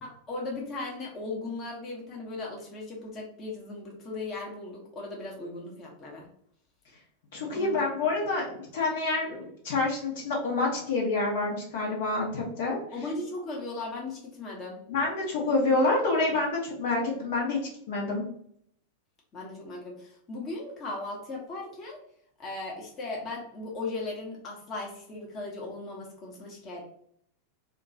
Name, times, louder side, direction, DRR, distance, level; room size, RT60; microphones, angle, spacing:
voice 1, 0.0-6.3 7.5-7.9 12.9-14.8 19.3-22.0 22.4-26.8, left 2 dB, 25° left, -2 dB, 1.1 m, -37 dB
voice 2, 7.3-12.8 14.9-17.6 17.9-18.2, left 3 dB, 55° left, -2 dB, 1.1 m, -27 dB
2.9 x 2.4 x 4.0 m, 0.67 s
figure-of-eight pair, 90°, 0 cm